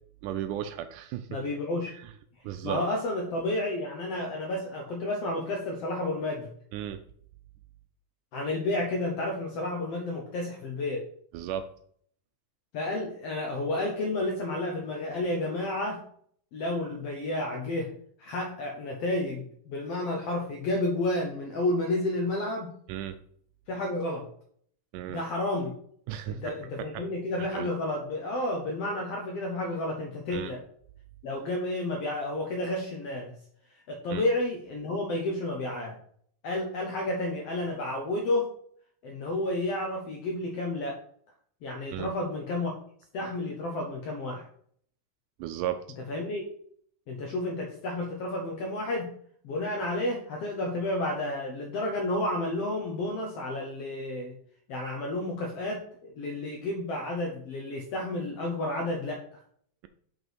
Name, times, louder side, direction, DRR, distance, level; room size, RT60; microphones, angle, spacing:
voice 1, 0.2-1.3 2.0-2.1 2.4-2.8 6.7-7.0 11.3-11.7 22.9-23.2 24.9-25.2 26.1-26.4 26.8-27.0 27.4-27.7 30.3-30.5 34.1-34.2 41.9-42.1 45.4-45.8, right 11 dB, 80° right, 9 dB, 1.9 m, -34 dB
voice 2, 1.3-1.9 2.6-6.5 8.3-11.1 12.7-16.0 16.5-17.9 18.2-22.7 23.7-24.3 25.1-25.7 26.3-30.6 31.2-33.4 33.9-36.0 36.4-38.5 39.0-41.0 41.6-42.7 43.1-44.4 46.1-46.4 47.1-49.1 49.4-54.3 54.7-59.2, left 1 dB, 70° left, 1 dB, 1.5 m, -31 dB
6.1 x 5.4 x 4.6 m, 0.63 s
omnidirectional pair, 3.9 m